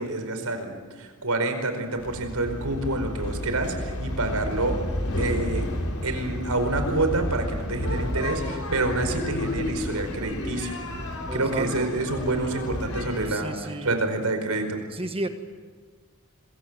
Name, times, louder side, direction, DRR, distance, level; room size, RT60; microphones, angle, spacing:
voice 1, 0.0-4.8 5.2-5.7 6.0-10.8 11.3-14.8, right 2 dB, 85° right, 7 dB, 4.9 m, -28 dB
sound 1, 2.0-13.3, left 1 dB, 85° left, 5.0 m, -31 dB
voice 2, 11.3-11.9 13.3-14.0 14.9-15.3, right 2 dB, 25° right, 7 dB, 1.4 m, -32 dB
26.5 x 23.0 x 7.6 m, 1.5 s
head